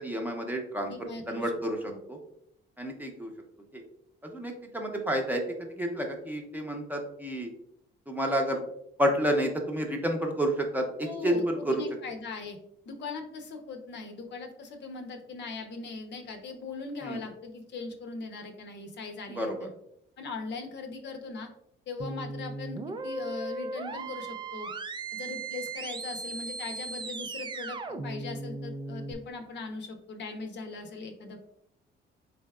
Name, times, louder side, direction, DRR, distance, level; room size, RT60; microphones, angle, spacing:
voice 1, 0.0-0.9 1.3-2.2 2.8-3.3 3.7-3.8 4.2-5.4 5.7-7.5 8.1-8.6 9.0-11.8 17.0-17.2 19.3-19.7, equal, 10° right, 1 dB, 0.7 m, -30 dB
voice 2, 0.9-1.5 1.8-2.0 11.0-12.6 12.9-19.7 20.2-21.5 21.9-24.7 25.1-31.4, left 4 dB, 60° left, 4 dB, 0.7 m, -40 dB
sound 1, 22.0-29.1, right 3 dB, 25° right, 0.3 m, -37 dB
3.9 x 3.4 x 2.3 m, 0.72 s
cardioid pair, 90°, 20 cm